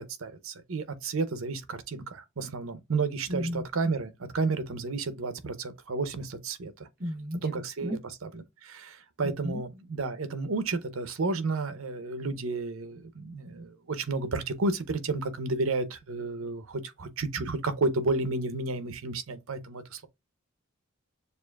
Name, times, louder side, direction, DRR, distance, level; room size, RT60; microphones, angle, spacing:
voice 1, 0.0-6.9 7.4-20.1, right 3 dB, 75° right, 0.7 m, -32 dB
voice 2, 3.3-3.6 7.0-7.4 7.8-8.0 9.4-9.6, equal, 45° right, 1.1 m, -32 dB
6.8 x 2.5 x 2.3 m
head